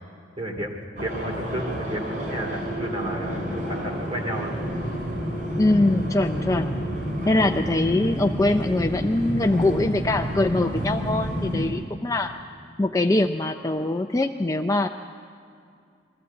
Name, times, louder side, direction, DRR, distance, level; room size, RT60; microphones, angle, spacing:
voice 1, 0.4-0.7 1.0-4.5, right 1 dB, 30° right, 2 dB, 2.5 m, -32 dB
sound 1, 1.0-11.7, equal, 45° right, 5.6 m, -29 dB
voice 2, 5.6-6.7 7.3-12.3 12.8-14.9, left 2 dB, 15° left, 5 dB, 0.4 m, -23 dB
22.0 x 14.5 x 8.2 m, 2.3 s
head